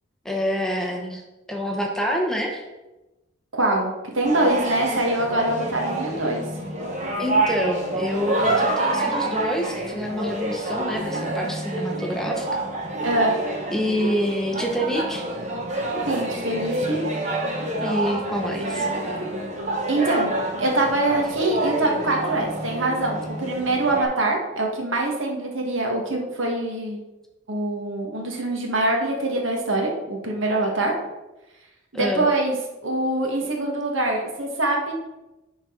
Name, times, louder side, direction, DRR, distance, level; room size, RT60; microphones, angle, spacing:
voice 1, 0.2-1.2 1.5-2.6 7.2-12.5 13.7-15.3 17.8-18.9 31.9-32.3, equal, ahead, 1 dB, 0.7 m, -27 dB
voice 2, 3.5-6.4 13.0-13.3 16.1-17.0 19.9-27.0 27.5-30.9 31.9-32.6 32.8-34.9, right 2 dB, 75° right, 0 dB, 1.4 m, -24 dB
sound 1, 4.2-24.1, right 2 dB, 35° right, 1.1 m, -27 dB
10.0 x 3.9 x 3.7 m, 1.0 s
head